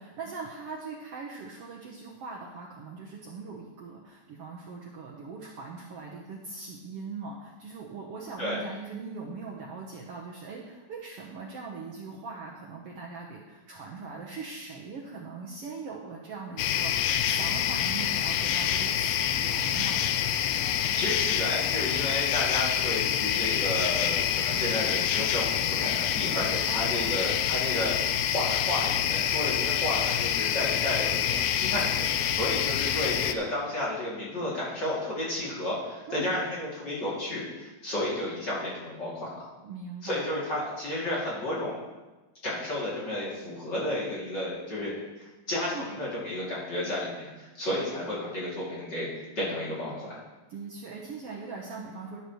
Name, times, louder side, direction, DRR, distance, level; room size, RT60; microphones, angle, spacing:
voice 1, 0.0-20.0 26.7-27.2 36.1-36.3 39.6-40.2 45.7-45.9 50.5-52.2, right 4 dB, 90° right, -2 dB, 1.3 m, -40 dB
sound 1, 16.6-33.3, left 10 dB, 85° left, 2.4 m, -27 dB
voice 2, 20.9-27.9 28.3-39.5 40.0-41.8 42.4-50.2, left 1 dB, 30° left, -7 dB, 2.9 m, -32 dB
11.5 x 11.5 x 3.1 m, 1.2 s
omnidirectional pair, 4.1 m